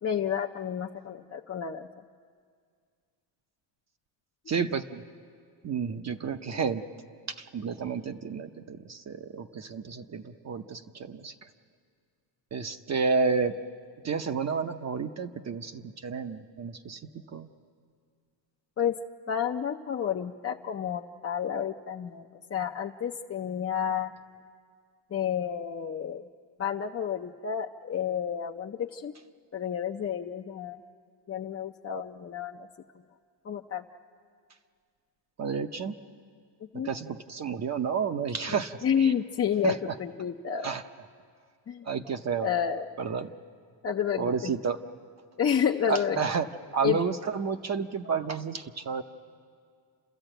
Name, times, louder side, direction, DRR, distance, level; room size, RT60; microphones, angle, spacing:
voice 1, 0.0-1.9 6.5-6.6 18.8-19.0 19.3-24.1 25.1-26.2 26.6-29.1 29.5-30.8 31.3-32.7 33.4-33.8 36.7-36.9 38.5-40.7 41.7-41.9 42.4-42.9 43.8-44.5 45.4-46.2 46.7-47.0, left 8 dB, 30° left, 1 dB, 0.6 m, -30 dB
voice 2, 4.5-5.0 5.6-6.8 7.3-11.5 12.5-13.6 14.0-17.0 17.3-17.5 35.4-36.0 36.8-39.1 39.6-39.8 40.6-40.8 41.8-42.5 43.0-43.3 44.2-44.8 45.9-46.5 46.7-49.0, right 5 dB, 35° right, 7 dB, 0.8 m, -31 dB
30.0 x 13.5 x 9.0 m, 2.1 s
cardioid pair, 125°, 47 cm